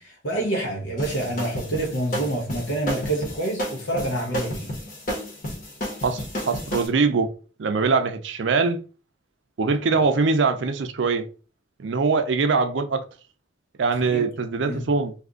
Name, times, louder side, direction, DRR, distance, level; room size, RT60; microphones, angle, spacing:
voice 1, 0.0-4.7 14.1-14.3 14.6-14.9, right 1 dB, 80° left, 1.0 m, -27 dB
sound 1, 1.0-6.9, equal, 45° left, 1.1 m, -31 dB
voice 2, 6.0-7.3 7.6-8.8 9.6-11.3 11.8-13.0 13.8-15.1, right 4 dB, 70° right, 0.5 m, -22 dB
2.7 x 2.5 x 3.6 m
head